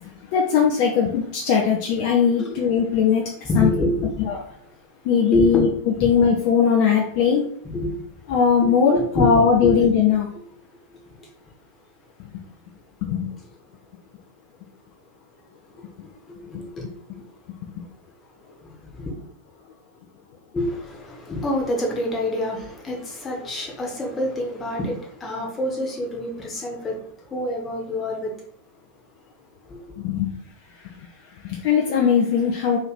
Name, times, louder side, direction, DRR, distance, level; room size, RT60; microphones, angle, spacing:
voice 1, 0.0-3.7 4.3-4.4 5.0-5.7 6.0-7.4 8.3-10.3 13.0-13.3 17.6-17.7 30.0-30.3 31.4-32.8, left 7 dB, 45° left, 0 dB, 0.5 m, -19 dB
voice 2, 3.5-4.3 5.3-5.7 7.3-7.4 7.6-8.0 8.3-9.8 10.9-11.3 15.7-17.2 18.6-19.1 20.5-27.0 27.3-28.3 29.7-29.8, left 1 dB, 20° left, 0 dB, 1.1 m, -27 dB
3.0 x 2.9 x 4.0 m, 0.66 s
figure-of-eight pair, 90°, 0 cm